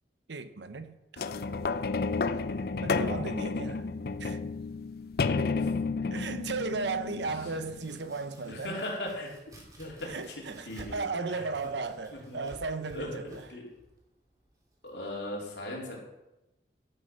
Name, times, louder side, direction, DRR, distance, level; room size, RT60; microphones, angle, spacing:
voice 1, 0.3-1.3 2.8-3.9 4.2-4.4 6.1-8.8 10.0-13.5, right 4 dB, 85° right, 0.9 m, -35 dB
sound 1, 1.2-7.9 8.6-8.7, left 4 dB, 60° left, 0.4 m, -31 dB
Domestic sounds home sounds, 7.5-15.2, right 1 dB, 20° right, 2.5 m, -54 dB
voice 2, 8.5-9.3 9.8-10.3 10.6-11.4 12.1-12.5 12.9-13.7 14.8-16.0, left 1 dB, 80° left, 3.6 m, -38 dB
13.0 x 6.8 x 5.6 m
head